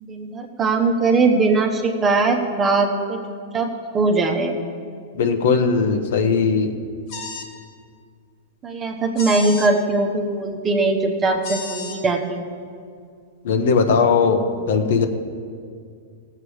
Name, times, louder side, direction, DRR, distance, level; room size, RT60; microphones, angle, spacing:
voice 1, 0.0-3.2 3.5-4.5 8.6-12.6, right 3 dB, 20° right, 3 dB, 1.1 m, -20 dB
voice 2, 5.1-6.7 13.4-15.1, left 5 dB, 70° left, 6 dB, 1.1 m, -19 dB
sound 1, 7.1-7.5 9.2-9.7 11.4-12.0, left 3 dB, 50° left, 1.6 m, -32 dB
17.5 x 7.6 x 4.9 m, 2.2 s
supercardioid pair, 150°, 0 cm